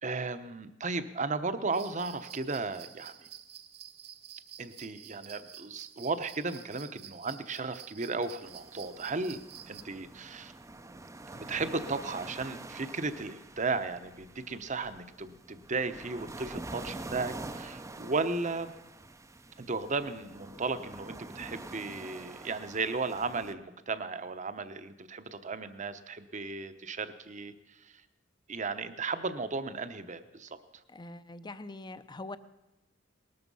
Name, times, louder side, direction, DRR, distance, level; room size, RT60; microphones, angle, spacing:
voice 1, 0.0-3.3 4.6-9.4 9.7-10.5 11.3-18.7 19.6-27.5 27.8-28.0 28.5-30.6, right 3 dB, 40° right, 11 dB, 1.0 m, -35 dB
sound 1, 1.7-9.8, right 10 dB, 55° right, 1.3 m, -50 dB
sound 2, 8.4-23.5, right 2 dB, 15° right, 0.6 m, -46 dB
voice 2, 30.9-32.4, left 2 dB, 25° left, 13 dB, 0.7 m, -43 dB
19.5 x 13.5 x 5.5 m, 0.99 s
head